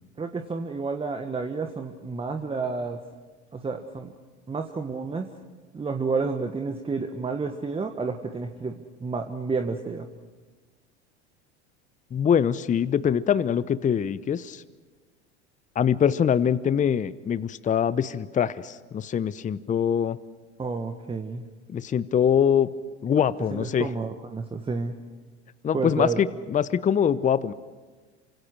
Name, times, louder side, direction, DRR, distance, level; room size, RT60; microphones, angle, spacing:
voice 1, 0.2-3.0 3.5-4.1 4.5-5.3 5.7-10.1 20.6-21.4 23.5-24.9 25.7-26.2, right 4 dB, 15° right, 5 dB, 1.5 m, -30 dB
voice 2, 12.1-14.6 15.8-20.2 21.7-22.7 23.0-23.9 25.6-27.5, left 8 dB, 20° left, 17 dB, 0.8 m, -23 dB
28.0 x 25.5 x 6.2 m, 1.3 s
hypercardioid pair, 80°, 34 cm